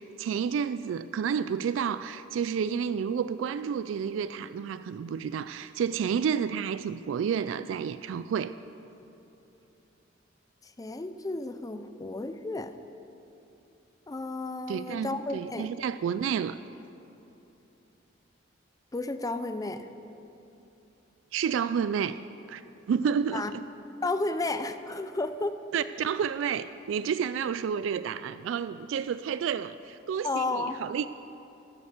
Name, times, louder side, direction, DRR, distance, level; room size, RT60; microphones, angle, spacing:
voice 1, 0.0-8.5 14.7-16.6 21.3-22.2 22.5-22.6 22.9-23.6 25.7-31.1, right 7 dB, 80° right, 13 dB, 0.3 m, -30 dB
voice 2, 10.6-12.8 14.1-15.7 18.9-19.9 23.3-23.5 24.0-25.6 30.2-30.8, left 2 dB, 20° left, 10 dB, 0.5 m, -32 dB
12.5 x 8.6 x 6.6 m, 3.0 s
head